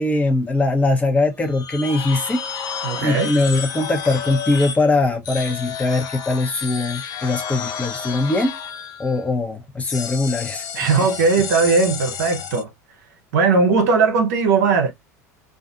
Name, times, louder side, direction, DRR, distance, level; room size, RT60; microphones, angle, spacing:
voice 1, 0.0-2.4 3.0-8.5 9.0-10.7, left 2 dB, 15° left, 0.9 m, -21 dB
sound 1, 1.4-4.8 5.2-9.2 9.8-12.6, left 7 dB, 45° left, 0.6 m, -31 dB
voice 2, 2.8-3.3 10.7-12.7 13.3-14.9, right 4 dB, 70° right, 0.7 m, -18 dB
2.5 x 2.4 x 2.5 m
hypercardioid pair, 80°, 9 cm